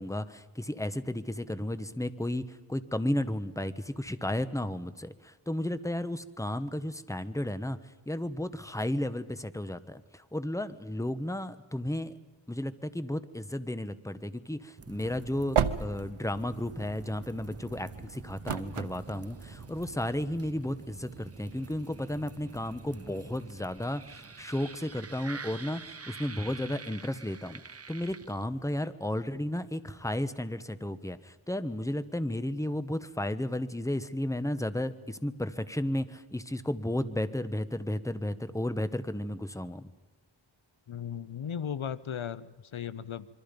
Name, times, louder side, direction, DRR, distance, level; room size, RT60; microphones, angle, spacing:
voice 1, 0.0-7.8 8.1-12.1 12.5-27.6 27.9-39.9, left 1 dB, 5° left, 12 dB, 1.2 m, -33 dB
sound 1, 14.8-28.7, right 4 dB, 30° right, 0.7 m, -47 dB
Exterior Prius door opens and close with amb car bys, 14.9-19.9, right 7 dB, 90° right, 1.0 m, -35 dB
voice 2, 40.9-43.3, left 8 dB, 75° left, 17 dB, 0.8 m, -36 dB
26.5 x 23.5 x 5.3 m, 1.2 s
wide cardioid pair, 55°, 48 cm